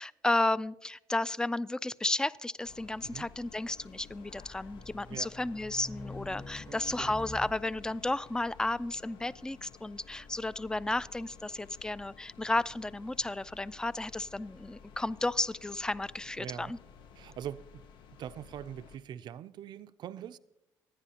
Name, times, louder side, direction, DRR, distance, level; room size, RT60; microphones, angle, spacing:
voice 1, 0.0-16.8, left 2 dB, 10° left, 0.3 m, -33 dB
sound 1, 2.6-19.0, left 6 dB, 75° left, 0.7 m, -54 dB
Race car auto racing, 3.6-8.0, left 2 dB, 30° left, 1.3 m, -47 dB
voice 2, 6.7-7.1 16.4-16.7 17.2-17.8 18.2-20.4, right 10 dB, 65° right, 0.4 m, -43 dB
25.5 x 9.7 x 2.9 m
cardioid pair, 85°, 8 cm